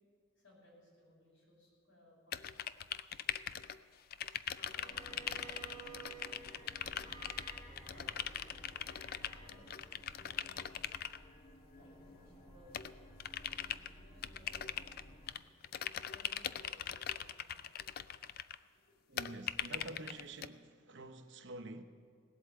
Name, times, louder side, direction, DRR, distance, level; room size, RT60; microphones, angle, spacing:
voice 1, 0.4-2.6 4.6-6.0 6.5-7.2 7.9-9.0 9.4-10.8 11.7-12.7 13.6-15.2 16.1-17.6 18.7-19.0, left 1 dB, 75° left, 5.3 m, -64 dB
sound 1, 2.3-3.8 4.1-11.2 12.7-13.9 14.2-15.4 15.6-18.6 19.2-20.5, left 10 dB, 45° left, 0.3 m, -41 dB
Bowed string instrument, 4.7-9.6, right 5 dB, 5° left, 2.1 m, -54 dB
sound 2, 4.9-15.4, equal, 30° left, 1.9 m, -56 dB
voice 2, 19.1-21.8, right 2 dB, 60° right, 0.9 m, -48 dB
18.5 x 8.2 x 7.7 m
head